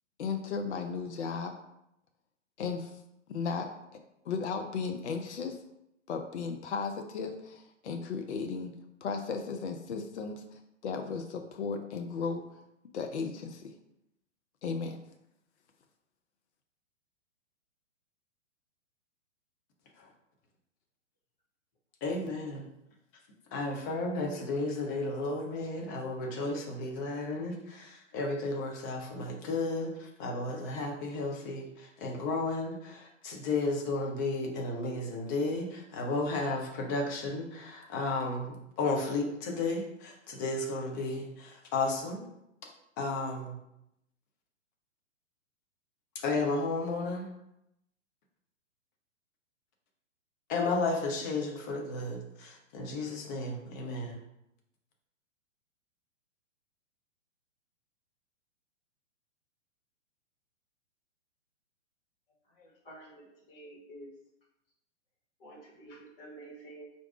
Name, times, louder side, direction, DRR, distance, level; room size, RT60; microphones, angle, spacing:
voice 1, 0.2-1.5 2.6-2.9 3.3-3.7 4.3-5.6 6.1-8.7 9.0-12.4 12.9-13.7 14.6-15.0, left 5 dB, 65° left, 5 dB, 0.6 m, -35 dB
voice 2, 22.0-22.7 23.5-42.2 43.0-43.6 46.2-47.3 50.5-54.2, left 3 dB, 15° left, 1 dB, 0.4 m, -33 dB
voice 3, 62.5-64.1 65.4-66.9, right 1 dB, 45° left, -2 dB, 1.5 m, -50 dB
4.5 x 2.6 x 3.6 m, 0.84 s
figure-of-eight pair, 115°, 38 cm